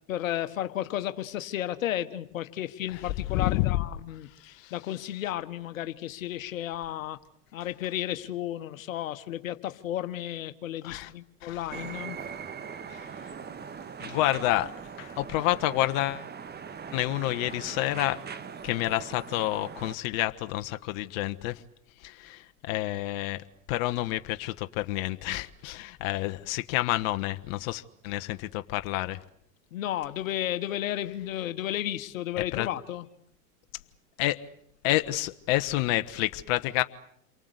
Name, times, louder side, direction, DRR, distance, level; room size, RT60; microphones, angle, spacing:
voice 1, 0.1-7.2 7.5-12.2 29.7-33.1, left 12 dB, 80° left, 1.5 m, -33 dB
voice 2, 3.3-3.8 4.6-4.7 10.8-11.1 11.4-11.7 12.9-13.3 14.0-14.7 15.0-16.3 16.9-18.2 18.6-21.6 22.0-23.4 23.7-29.2 32.5-32.7 34.2-34.4 34.8-36.8, left 16 dB, 60° left, 1.3 m, -29 dB
sound 1, 11.7-20.0, right 6 dB, 25° right, 1.5 m, -41 dB
28.5 x 23.5 x 8.2 m
hypercardioid pair, 90°, 40 cm